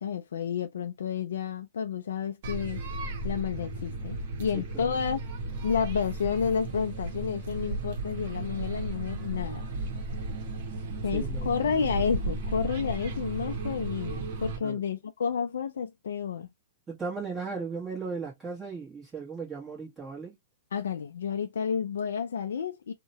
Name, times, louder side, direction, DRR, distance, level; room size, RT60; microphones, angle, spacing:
voice 1, 0.0-2.8 3.2-5.2 5.6-9.7 11.0-16.5 20.7-22.9, left 7 dB, 80° left, 0.3 m, -30 dB
sound 1, 2.4-14.6, right 2 dB, 55° right, 0.8 m, -34 dB
voice 2, 4.5-4.9 11.1-11.9 14.6-14.8 16.9-20.3, right 4 dB, 15° right, 1.1 m, -37 dB
2.7 x 2.1 x 2.7 m
hypercardioid pair, 130°, 0 cm